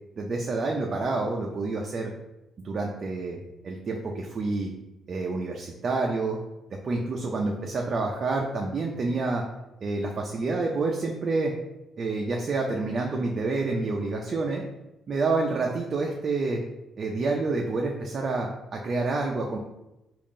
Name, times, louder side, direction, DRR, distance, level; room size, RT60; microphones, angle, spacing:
voice 1, 0.2-2.1 2.6-3.4 3.6-4.7 5.1-6.4 6.8-9.4 9.8-11.5 12.0-14.6 15.1-16.6 17.0-19.6, right 3 dB, 45° right, 0 dB, 0.4 m, -28 dB
3.6 x 2.5 x 3.7 m, 0.94 s
cardioid pair, 90°, 0 cm